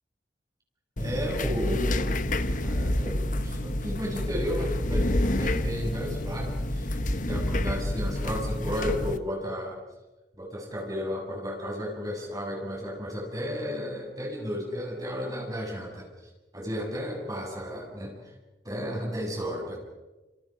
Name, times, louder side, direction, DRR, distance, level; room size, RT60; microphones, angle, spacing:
sound 1, 1.0-9.2, left 1 dB, 50° left, 1.2 m, -28 dB
voice 1, 1.0-2.2 2.6-6.9 7.2-9.8 10.4-16.1 16.5-18.1 18.6-19.8, equal, 20° right, -1 dB, 7.5 m, -33 dB
29.0 x 28.0 x 5.2 m, 1.1 s
head